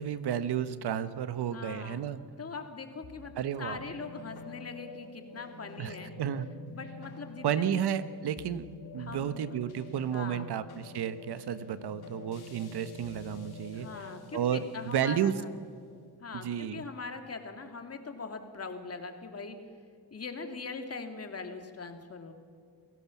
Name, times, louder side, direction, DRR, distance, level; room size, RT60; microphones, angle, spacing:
voice 1, 0.0-2.2 3.4-3.8 5.8-6.5 7.4-8.6 8.9-15.4 16.3-16.8, right 9 dB, 70° right, 13 dB, 1.2 m, -32 dB
voice 2, 1.5-2.0 2.4-3.3 3.6-6.1 6.7-7.8 9.0-9.3 10.1-10.5 13.7-15.6 16.2-16.5 16.7-19.6 20.1-22.3, left 4 dB, 35° left, 5 dB, 2.7 m, -41 dB
sound 1, 3.0-17.5, left 3 dB, 65° left, 3.8 m, -48 dB
28.5 x 17.0 x 7.3 m, 2.1 s
cardioid pair, 100°, 40 cm